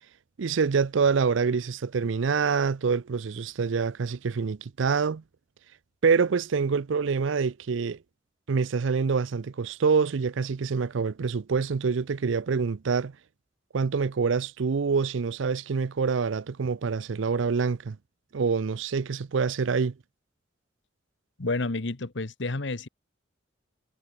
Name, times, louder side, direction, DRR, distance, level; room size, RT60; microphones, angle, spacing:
voice 1, 0.4-5.2 6.0-8.0 8.5-13.1 13.7-18.0 18.3-19.9, right 5 dB, 75° right, 0.5 m, -26 dB
voice 2, 21.4-22.9, left 2 dB, 65° left, 1.1 m, -30 dB
head